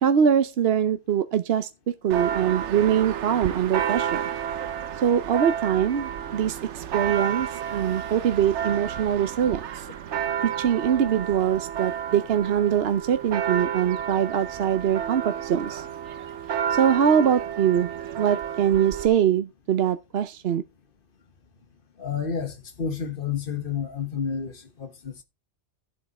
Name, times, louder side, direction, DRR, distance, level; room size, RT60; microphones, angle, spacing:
voice 1, 0.0-1.7 2.0-4.2 5.0-9.9 10.4-15.8 16.7-17.9 18.2-20.6, right 8 dB, 65° right, 0.9 m, -23 dB
Church bell, 2.1-19.1, right 9 dB, 85° right, 1.1 m, -31 dB
voice 2, 22.0-25.2, left 6 dB, 50° left, 1.5 m, -30 dB
12.5 x 7.8 x 4.1 m
omnidirectional pair, 1.2 m